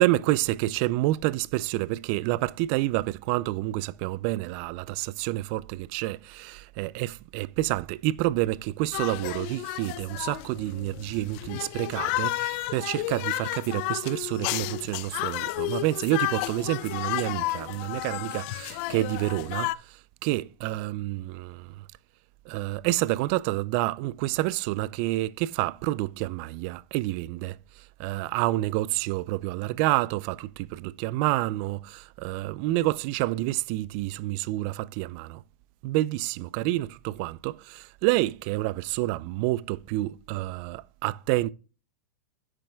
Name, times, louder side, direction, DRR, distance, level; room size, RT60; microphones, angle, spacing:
voice 1, 0.0-21.8 22.5-35.4 35.8-41.5, right 17 dB, 40° right, 0.4 m, -28 dB
sound 1, 8.9-19.7, left 18 dB, 45° left, 0.4 m, -32 dB
9.7 x 7.5 x 2.3 m
supercardioid pair, 145°, 9 cm